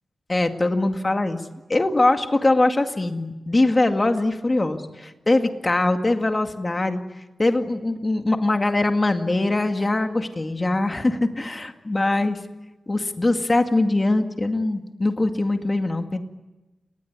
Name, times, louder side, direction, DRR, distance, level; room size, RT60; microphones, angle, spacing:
voice 1, 0.3-1.4 1.7-7.0 7.4-12.4 12.9-16.2, left 2 dB, 25° left, 6 dB, 2.2 m, -22 dB
30.0 x 20.0 x 9.6 m, 1.1 s
wide cardioid pair, 120°, 0 cm